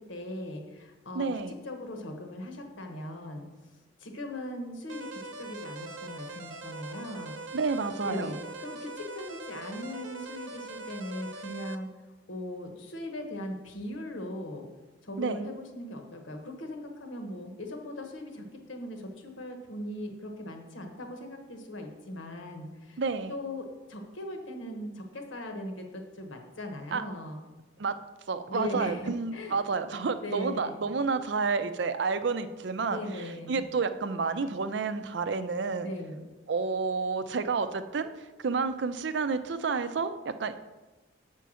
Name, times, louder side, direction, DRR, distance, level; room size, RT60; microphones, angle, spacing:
voice 1, 0.0-7.4 8.0-11.9 12.3-14.7 15.0-23.0 23.3-27.4 28.5-29.5 30.2-30.8 32.9-33.6 35.8-36.2, left 1 dB, 85° left, 4 dB, 1.2 m, -39 dB
voice 2, 1.1-1.5 7.5-8.3 15.2-15.4 23.0-23.3 26.9-27.0 27.8-28.0 28.3-33.0 33.5-35.9 36.5-38.1 38.4-40.5, right 4 dB, 65° right, 11 dB, 0.5 m, -30 dB
sound 1, 4.9-11.8, right 2 dB, 80° right, 0.8 m, -42 dB
6.9 x 4.5 x 6.3 m, 1.1 s
head